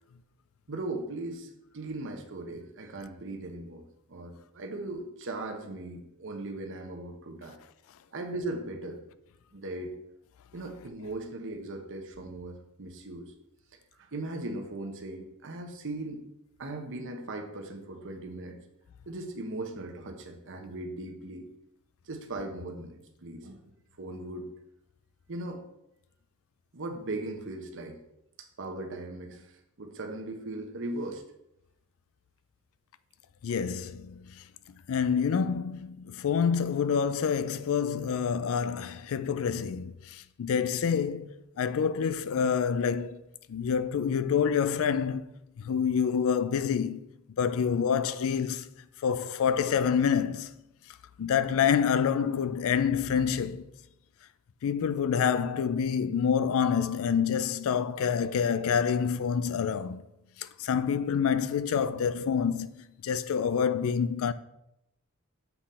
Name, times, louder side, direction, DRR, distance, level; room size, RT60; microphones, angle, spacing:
voice 1, 0.7-7.6 8.1-9.0 9.5-10.0 10.5-13.3 14.0-16.2 16.6-18.6 19.1-21.5 22.0-23.6 24.0-24.5 25.3-25.6 26.7-28.0 28.6-31.2, right 2 dB, 60° right, 0.9 m, -38 dB
voice 2, 33.4-34.4 34.9-43.2 43.5-45.3 45.6-47.1 47.4-48.7 49.0-50.5 51.2-53.6 54.6-60.0 60.4-64.3, left 7 dB, 65° left, 0.4 m, -27 dB
7.0 x 3.8 x 4.2 m
head